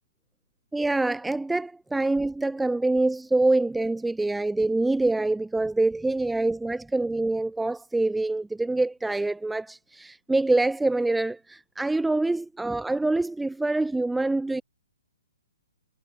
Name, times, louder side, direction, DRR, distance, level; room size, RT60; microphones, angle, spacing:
voice 1, 0.7-14.6, right 2 dB, 5° right, 7.3 m, -25 dB
figure-of-eight pair, 125°, 0 cm